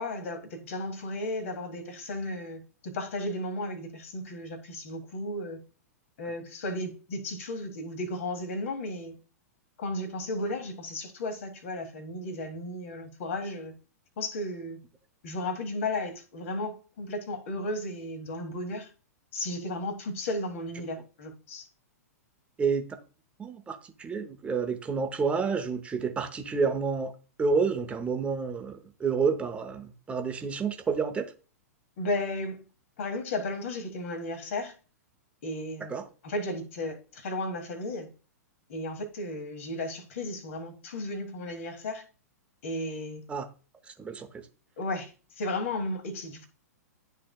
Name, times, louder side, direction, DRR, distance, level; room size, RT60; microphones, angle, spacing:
voice 1, 0.0-5.6 6.2-9.2 9.8-13.7 14.2-14.8 15.2-18.9 19.3-21.7 32.0-32.6 33.0-34.7 35.4-36.0 36.2-38.1 38.7-42.0 42.6-43.3 44.8-46.5, left 1 dB, 55° left, 1.5 m, -34 dB
voice 2, 23.4-27.1 27.4-31.3 35.9-36.0 43.3-43.5 44.0-44.5, right 5 dB, 15° right, 0.8 m, -29 dB
11.5 x 3.8 x 2.3 m
figure-of-eight pair, 105°, 9 cm